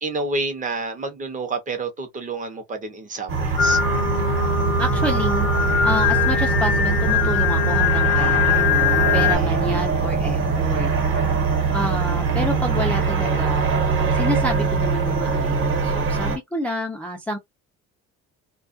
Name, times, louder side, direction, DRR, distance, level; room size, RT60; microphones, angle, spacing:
voice 1, 0.0-3.8 9.4-9.5, right 3 dB, 25° right, 0.7 m, -29 dB
sound 1, 3.3-16.4, right 4 dB, 45° right, 1.1 m, -22 dB
Singing, 3.6-9.4, left 8 dB, 60° left, 0.6 m, -22 dB
voice 2, 4.8-10.9 11.7-13.7 14.1-17.4, equal, 5° left, 0.4 m, -29 dB
2.3 x 2.2 x 2.5 m
cardioid pair, 140°, 29 cm